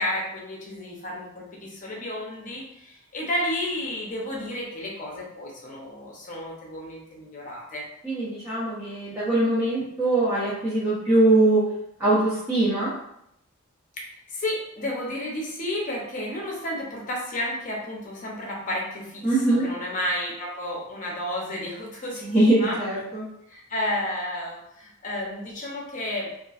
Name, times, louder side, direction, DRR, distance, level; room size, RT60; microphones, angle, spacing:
voice 1, 0.0-7.9 14.0-22.8 23.5-26.3, left 1 dB, 35° left, -2 dB, 0.7 m, -32 dB
voice 2, 8.0-11.6 12.0-12.9 19.2-19.7 22.2-23.2, right 2 dB, 10° right, -12 dB, 0.7 m, -22 dB
2.9 x 2.4 x 2.4 m, 0.78 s
head